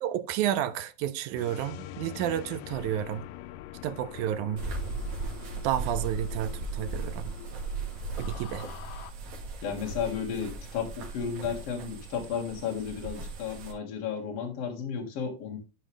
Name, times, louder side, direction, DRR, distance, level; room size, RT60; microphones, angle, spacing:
voice 1, 0.0-3.3 3.8-4.6 5.6-7.3 8.2-8.6, right 11 dB, 80° right, 1.9 m, -31 dB
sound 1, 1.4-9.1, left 13 dB, 85° left, 2.2 m, -44 dB
sound 2, 4.6-13.7, right 3 dB, 60° right, 3.0 m, -37 dB
voice 2, 9.6-15.6, left 7 dB, 50° left, 2.6 m, -33 dB
12.0 x 4.7 x 3.3 m
omnidirectional pair, 3.8 m